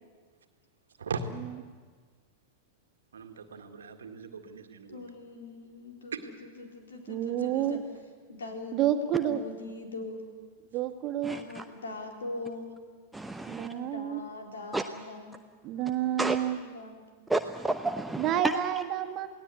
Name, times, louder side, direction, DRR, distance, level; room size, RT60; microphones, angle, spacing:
voice 1, 3.1-5.0 6.1-6.5, right 6 dB, 70° right, 6 dB, 1.9 m, -39 dB
voice 2, 4.9-6.1 6.6-7.8 8.3-8.8 9.1-10.2 11.3-12.7 13.8-15.4 16.5-17.0, left 2 dB, 70° left, 2 dB, 4.1 m, -41 dB
voice 3, 7.1-7.8 8.7-9.4 10.7-11.4 13.5-14.2 15.6-16.6 18.2-19.3, right 11 dB, 35° right, 6 dB, 2.0 m, -29 dB
voice 4, 11.2-11.6 13.1-13.7 14.7-14.8 16.2-16.4 17.3-18.4, right 2 dB, 5° right, 7 dB, 0.9 m, -31 dB
28.5 x 18.5 x 8.3 m, 1.5 s
figure-of-eight pair, 90°, 0 cm